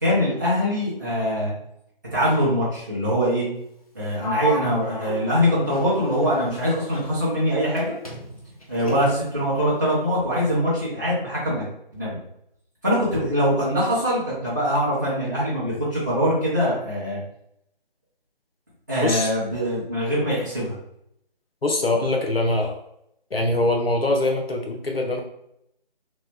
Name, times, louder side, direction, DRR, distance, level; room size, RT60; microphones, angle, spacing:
voice 1, 0.0-1.5 2.1-3.5 3.9-8.0 8.7-11.7 11.9-12.2 12.8-17.2 18.9-20.7, equal, 20° right, -9 dB, 0.6 m, -23 dB
Sliding door, 4.2-7.8 8.0-9.4, left 1 dB, 40° left, 0.6 m, -34 dB
voice 2, 21.6-22.8 23.3-25.2, left 2 dB, 75° left, 1 dB, 0.7 m, -23 dB
3.0 x 2.2 x 3.4 m, 0.75 s
figure-of-eight pair, 155°, 29 cm